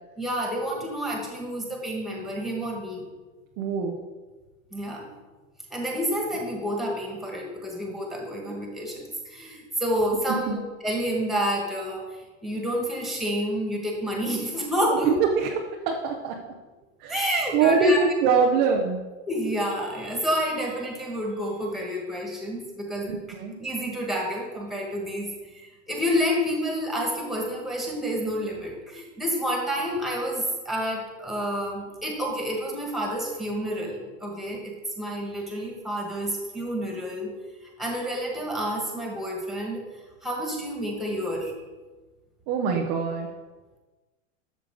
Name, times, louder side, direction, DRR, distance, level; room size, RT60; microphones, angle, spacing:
voice 1, 0.2-3.0 4.7-5.1 5.7-12.0 12.4-15.1 17.1-18.0 19.3-23.1 23.6-37.3 37.8-39.8 40.2-41.5, equal, ahead, -1 dB, 1.7 m, -29 dB
voice 2, 3.6-4.0 10.5-10.6 15.0-16.5 17.0-17.2 17.5-19.0 23.1-23.6 42.5-43.3, right 5 dB, 15° right, 1 dB, 0.3 m, -23 dB
12.0 x 7.3 x 3.7 m, 1.2 s
supercardioid pair, 155°, 37 cm